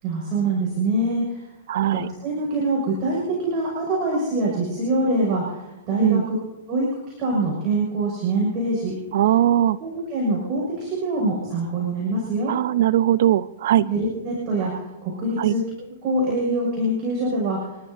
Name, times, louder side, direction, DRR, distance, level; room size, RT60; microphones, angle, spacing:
voice 1, 0.0-1.4 1.9-6.4 6.7-6.9 7.2-8.9 9.8-12.5 13.8-15.6 16.0-17.6, right 2 dB, 35° right, -3 dB, 6.2 m, -24 dB
voice 2, 1.7-2.1 6.0-6.3 9.1-9.8 12.5-13.9 15.4-15.5, right 12 dB, 65° right, 17 dB, 0.6 m, -19 dB
29.5 x 13.0 x 2.8 m, 1.0 s
hypercardioid pair, 135°, 0 cm